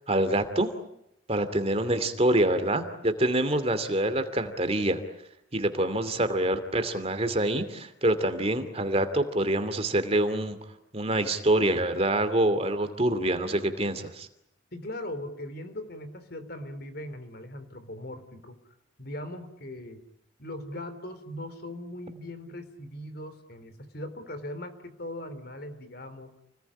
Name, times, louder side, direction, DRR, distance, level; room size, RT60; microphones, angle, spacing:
voice 1, 0.1-0.7 1.3-5.0 5.5-10.6 10.9-14.3, right 1 dB, 30° right, 9 dB, 2.7 m, -26 dB
voice 2, 14.7-18.6 19.0-20.0 20.4-26.3, left 1 dB, 55° left, 11 dB, 3.6 m, -39 dB
30.0 x 20.0 x 10.0 m, 0.78 s
head